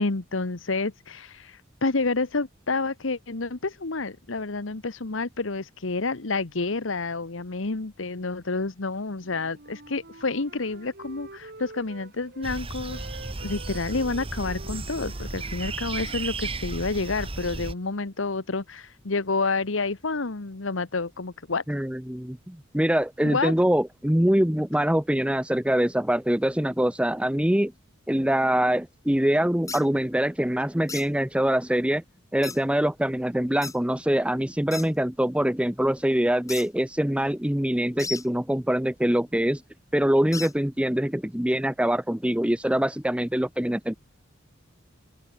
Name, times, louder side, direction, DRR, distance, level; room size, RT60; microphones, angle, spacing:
voice 1, 0.0-13.1 13.4-21.6 23.2-23.5, left 3 dB, 70° left, 1.2 m, -29 dB
Wind instrument woodwind instrument, 9.2-12.6 12.9-16.7, right 2 dB, 55° right, 3.5 m, -47 dB
sound 1, 12.4-17.7, right 3 dB, 30° right, 1.4 m, -34 dB
voice 2, 21.7-27.7 28.1-32.0 32.3-39.6 39.9-43.9, right 1 dB, 5° right, 1.0 m, -24 dB
sound 2, 29.7-29.8 30.9-31.1 32.4-32.6 33.6-33.8 34.7-34.9 36.5-36.7 38.0-38.3 40.3-40.5, left 4 dB, 15° left, 4.8 m, -34 dB
open air
head